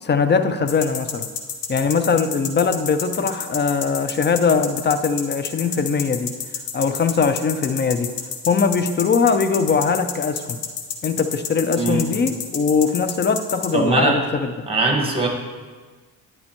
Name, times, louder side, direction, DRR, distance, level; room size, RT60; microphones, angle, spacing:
voice 1, 0.0-1.3 1.7-6.3 6.7-8.1 8.5-10.6 11.0-14.7, left 5 dB, 25° left, 10 dB, 0.4 m, -21 dB
sound 1, 0.7-13.7, left 8 dB, 55° left, 0.9 m, -29 dB
voice 2, 13.7-14.2 14.7-15.3, right 3 dB, 10° right, 1 dB, 1.5 m, -20 dB
10.5 x 4.4 x 3.0 m, 1.4 s
hypercardioid pair, 45°, 50 cm